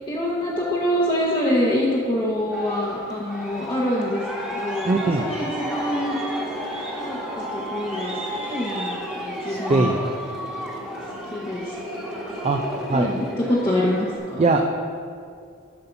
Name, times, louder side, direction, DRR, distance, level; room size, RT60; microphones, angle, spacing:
voice 1, 0.1-6.2 7.0-10.0 11.3-12.1 12.9-14.5, left 1 dB, 25° left, -5 dB, 0.8 m, -26 dB
Aircraft, 2.5-14.2, equal, 5° right, 1.2 m, -32 dB
voice 2, 4.8-5.2 9.5-10.0 12.4-12.6 12.9-13.1 14.4-14.8, right 3 dB, 30° right, 3 dB, 0.4 m, -21 dB
7.6 x 5.7 x 5.7 m, 2.3 s
head